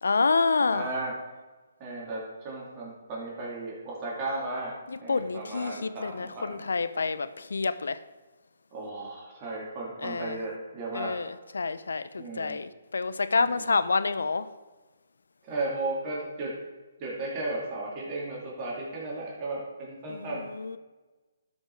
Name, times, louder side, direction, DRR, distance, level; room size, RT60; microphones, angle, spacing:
voice 1, 0.0-0.9 4.9-8.0 10.0-10.4 10.9-14.5 20.1-20.8, left 4 dB, 85° left, 0.6 m, -28 dB
voice 2, 0.7-1.1 1.8-4.7 5.0-6.5 8.7-11.1 12.2-12.6 13.4-13.7 15.4-16.5 17.0-20.4, right 2 dB, 30° right, 2.6 m, -35 dB
12.0 x 5.4 x 4.6 m
hypercardioid pair, 155°, 0 cm